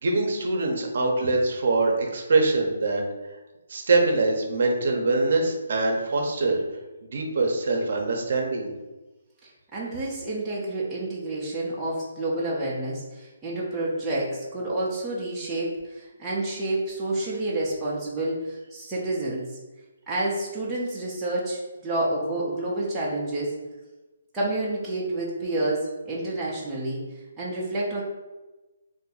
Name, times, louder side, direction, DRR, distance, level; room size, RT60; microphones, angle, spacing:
voice 1, 0.0-3.0 3.7-6.6 7.0-8.7, right 3 dB, 50° right, 2 dB, 0.7 m, -23 dB
voice 2, 9.4-19.6 20.1-23.5 24.3-27.1 27.4-28.0, right 2 dB, 10° right, -8 dB, 0.5 m, -29 dB
2.6 x 2.6 x 3.9 m, 1.1 s
hypercardioid pair, 170°, 0 cm